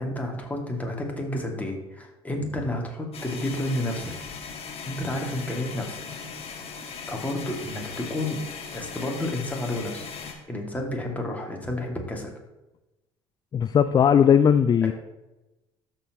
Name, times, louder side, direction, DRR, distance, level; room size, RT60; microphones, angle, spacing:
voice 1, 0.0-4.1 4.8-6.0 7.1-8.4 8.7-10.1 10.5-12.3 14.8-14.9, left 1 dB, 10° left, 0 dB, 2.2 m, -30 dB
sound 1, 3.1-10.3, left 5 dB, 45° left, 1.7 m, -38 dB
voice 2, 13.5-14.9, left 8 dB, 30° left, 12 dB, 0.3 m, -18 dB
13.5 x 4.5 x 3.0 m, 1.0 s
hypercardioid pair, 60°, 13 cm